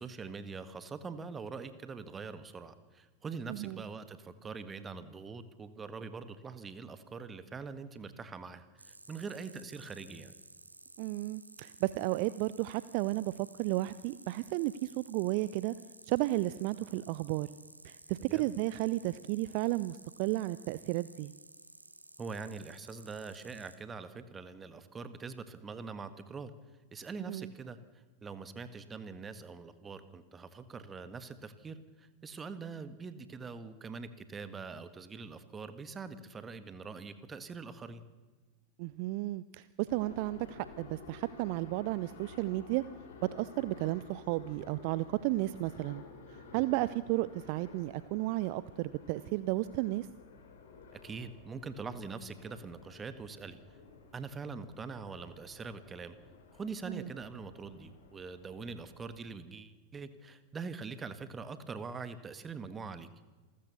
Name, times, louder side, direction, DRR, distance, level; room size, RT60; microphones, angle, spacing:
voice 1, 0.0-10.3 18.3-18.5 22.2-26.5 26.9-27.8 28.2-38.0 46.5-46.6 50.9-53.6 54.1-56.2 56.5-63.1, right 4 dB, 20° right, 12 dB, 1.6 m, -43 dB
voice 2, 3.5-3.8 11.0-15.7 16.1-17.5 17.8-21.3 27.2-27.5 38.8-42.8 43.3-46.0 46.5-50.1 56.9-57.1, right 18 dB, 45° right, 17 dB, 0.5 m, -33 dB
sound 1, 8.8-23.8, right 2 dB, 85° right, 1.5 m, -55 dB
sound 2, 39.9-59.2, left 4 dB, 60° left, 4.5 m, -53 dB
27.5 x 14.0 x 7.0 m, 1.3 s
figure-of-eight pair, 90°, 0 cm